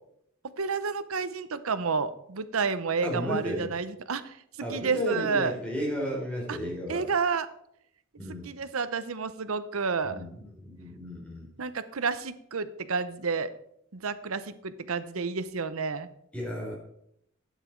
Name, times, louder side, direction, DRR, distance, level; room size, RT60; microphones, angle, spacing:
voice 1, 0.6-5.5 6.5-6.6 6.9-7.5 8.3-10.2 11.6-13.5 13.9-16.1, right 5 dB, 85° right, 13 dB, 0.8 m, -30 dB
voice 2, 3.0-3.7 4.6-7.0 8.2-8.5 10.0-11.5 16.3-16.7, equal, 5° left, -2 dB, 3.7 m, -33 dB
12.0 x 9.3 x 4.5 m, 0.73 s
head